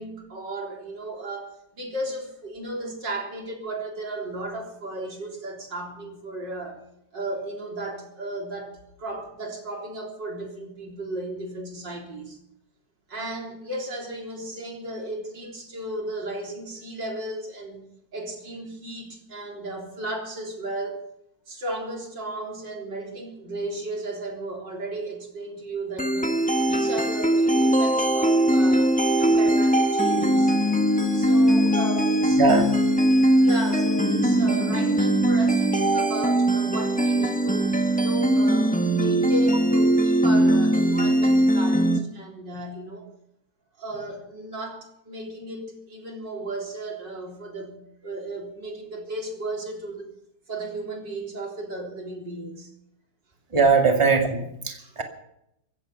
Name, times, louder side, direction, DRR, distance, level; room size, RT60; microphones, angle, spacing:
voice 1, 0.0-6.8 7.1-12.4 13.1-17.9 18.1-21.1 21.5-26.4 26.6-30.6 31.1-32.4 33.4-43.1 43.8-50.1 50.5-52.7 54.8-54.9, right 2 dB, 90° right, 0 dB, 4.2 m, -35 dB
sound 1, 26.0-42.0, right 1 dB, 5° left, 0.8 m, -20 dB
voice 2, 32.4-32.7 53.5-55.0, right 4 dB, 15° right, 3 dB, 2.1 m, -20 dB
16.0 x 15.0 x 5.6 m, 0.78 s
omnidirectional pair, 1.9 m